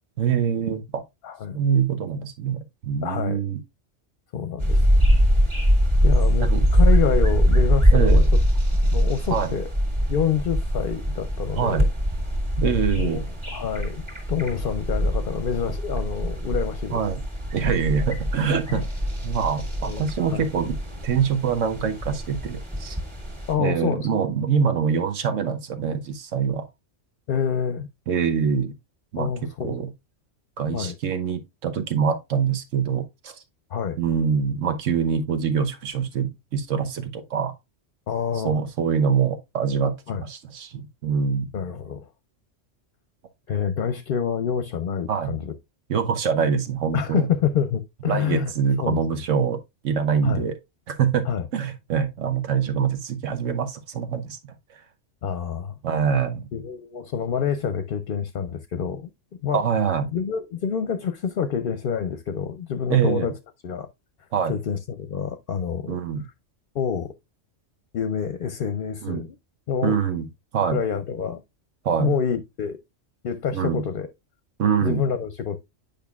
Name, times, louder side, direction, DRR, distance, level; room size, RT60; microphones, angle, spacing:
voice 1, 0.2-1.0 1.5-3.6 6.4-6.7 7.9-8.2 9.3-9.5 11.5-11.9 12.6-13.2 16.9-17.2 17.5-18.8 19.2-20.8 21.0-23.0 23.6-26.6 28.1-28.7 29.1-29.3 29.6-29.9 30.6-33.4 34.0-37.5 38.4-41.5 45.1-45.3 45.9-47.3 48.1-49.6 49.8-50.6 50.9-51.2 51.5-54.4 55.8-56.5 59.5-60.1 62.9-63.3 64.3-64.6 65.9-66.2 69.0-69.3 69.8-70.3 70.5-70.8 71.8-72.1 73.5-73.8 74.6-75.0, right 7 dB, 80° right, 1.3 m, -24 dB
voice 2, 1.2-1.6 3.0-3.4 4.3-4.8 6.0-8.2 8.8-9.7 10.1-11.9 13.0-13.2 13.5-14.0 14.3-17.0 18.7-18.9 19.8-20.5 23.5-24.1 27.3-27.9 29.2-29.8 30.7-30.9 33.7-34.0 38.1-38.5 40.1-40.2 41.5-42.0 43.5-45.5 46.9-48.5 48.8-49.0 50.2-50.4 51.3-51.5 55.2-55.8 56.5-59.1 59.4-59.6 60.1-63.3 63.6-63.9 64.5-64.8 65.1-66.0 66.7-67.1 67.9-69.3 69.7-70.0 70.7-71.4 72.0-72.8 73.2-74.1 74.8-75.6, left 7 dB, 55° left, 0.7 m, -27 dB
sound 1, 4.6-23.5, equal, 25° right, 1.8 m, -22 dB
9.0 x 5.2 x 2.3 m
omnidirectional pair, 1.3 m